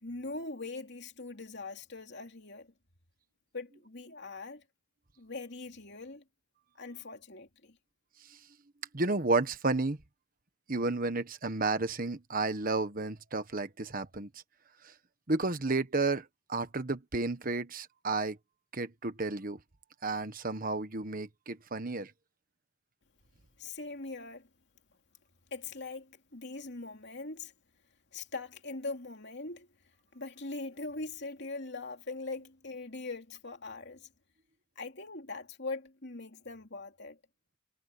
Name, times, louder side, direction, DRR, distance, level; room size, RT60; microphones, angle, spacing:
voice 1, 0.0-2.7 3.5-4.6 5.2-6.2 6.8-7.8 23.6-24.5 25.5-27.5 28.1-29.7 30.1-34.1 34.7-37.2, left 3 dB, 55° left, 3.1 m, -41 dB
voice 2, 8.9-10.0 10.7-14.3 14.8-14.9 15.3-18.4 18.7-19.6 20.0-22.1, right 3 dB, 40° right, 1.4 m, -32 dB
head